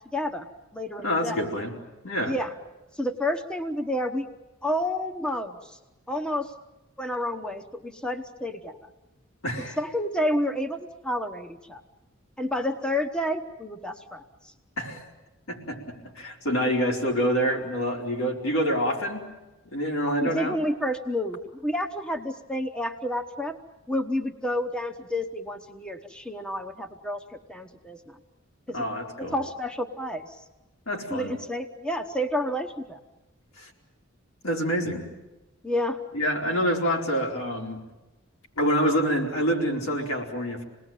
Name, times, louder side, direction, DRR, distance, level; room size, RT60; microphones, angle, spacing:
voice 1, 0.1-0.5 0.7-1.4 2.2-2.5 2.9-4.3 4.6-5.8 6.1-6.5 7.0-8.8 9.8-11.8 12.4-14.5 20.1-23.6 23.9-28.2 28.7-28.9 29.2-30.4 31.1-33.0 35.6-36.0, left 1 dB, 5° left, 5 dB, 1.0 m, -30 dB
voice 2, 1.0-1.7 2.0-2.3 9.4-9.8 14.8-15.0 15.5-19.3 19.6-20.6 28.7-29.4 30.9-31.3 33.6-33.7 34.4-35.0 36.1-37.8 38.6-40.6, equal, 80° left, 0 dB, 4.7 m, -27 dB
27.5 x 20.0 x 9.1 m, 1.1 s
head